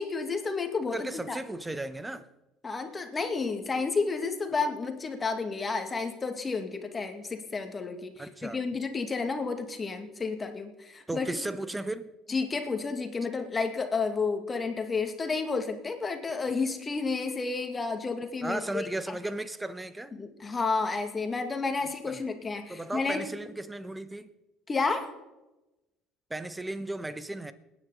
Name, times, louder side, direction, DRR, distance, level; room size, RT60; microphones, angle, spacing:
voice 1, 0.0-1.4 2.6-11.4 12.3-19.2 20.1-23.3 24.7-25.1, left 4 dB, 30° left, 2.2 m, -31 dB
voice 2, 0.9-2.3 8.2-8.6 11.1-12.1 18.4-20.1 22.1-22.3 22.7-24.3 26.3-27.5, right 2 dB, 10° right, 1.1 m, -35 dB
27.5 x 9.8 x 4.0 m
hypercardioid pair, 60°, 0 cm